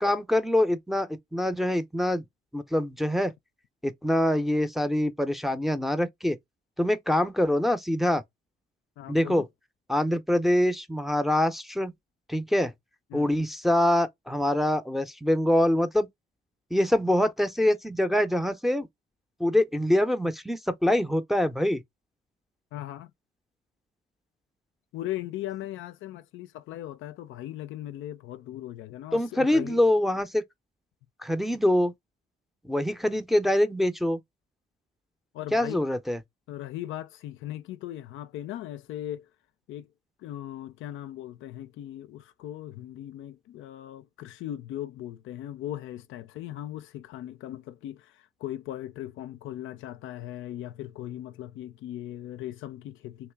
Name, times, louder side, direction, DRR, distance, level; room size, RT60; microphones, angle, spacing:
voice 1, 0.0-2.2 2.5-3.3 3.8-6.4 6.8-8.2 9.1-9.5 9.9-11.9 12.3-12.7 13.1-16.1 16.7-18.9 19.4-21.8 29.1-30.4 31.2-31.9 32.6-34.2 35.5-36.2, left 1 dB, ahead, 0.5 m, -24 dB
voice 2, 9.0-9.5 13.1-13.3 22.7-23.1 24.9-29.8 35.3-35.8 36.5-39.3 39.7-39.9 40.2-53.3, left 13 dB, 80° left, 0.4 m, -38 dB
3.1 x 2.9 x 3.3 m
cardioid pair, 90°, 20 cm